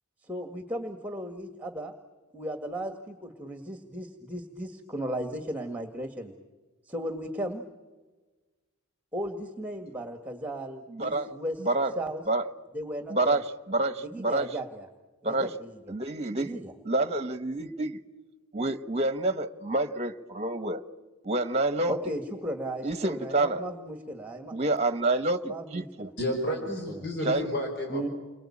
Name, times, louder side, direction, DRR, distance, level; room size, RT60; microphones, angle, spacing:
voice 1, 0.2-1.9 2.3-6.3 6.9-7.6 9.1-11.7 12.0-12.2 12.7-13.4 14.0-14.9 15.2-15.8 16.4-16.7 21.9-24.5 25.4-26.1 26.9-27.0 27.9-28.1, right 1 dB, 5° right, 1.8 m, -36 dB
voice 2, 10.9-11.3 11.6-11.9 12.3-12.4 13.1-14.5 15.2-15.5 15.9-16.6 16.8-18.0 18.5-20.8 21.2-21.9 22.8-23.6 24.5-26.1 27.2-27.4, right 2 dB, 30° right, 1.2 m, -28 dB
voice 3, 26.2-28.1, equal, 50° left, 4.9 m, -31 dB
30.0 x 23.0 x 8.7 m
head